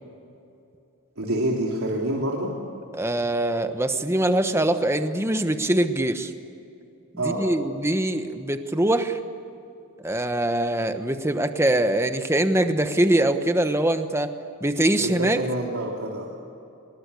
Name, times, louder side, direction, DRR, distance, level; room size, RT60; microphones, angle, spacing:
voice 1, 1.2-2.5 7.2-7.4 15.2-16.3, right 1 dB, 75° right, -2 dB, 3.2 m, -27 dB
voice 2, 2.9-6.3 7.2-9.2 10.0-14.3 14.6-15.4, right 1 dB, 10° right, 8 dB, 1.2 m, -23 dB
25.0 x 21.5 x 8.3 m, 2.7 s
head